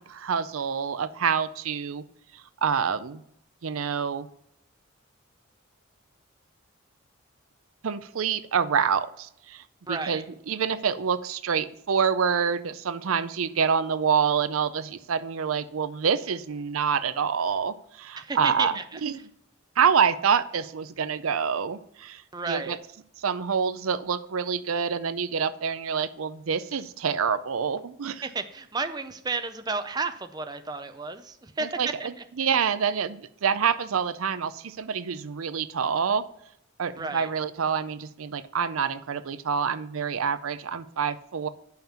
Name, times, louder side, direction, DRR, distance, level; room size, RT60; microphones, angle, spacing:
voice 1, 0.1-2.0 2.6-3.2 3.6-4.3 7.8-19.1 19.8-22.8 23.2-28.2 31.6-36.2 36.8-41.5, right 6 dB, 85° right, 12 dB, 0.5 m, -27 dB
voice 2, 9.9-10.2 18.2-19.0 22.3-22.8 28.2-32.1 37.0-37.3, right 4 dB, 20° right, 8 dB, 0.5 m, -32 dB
8.9 x 5.7 x 5.7 m, 0.72 s
head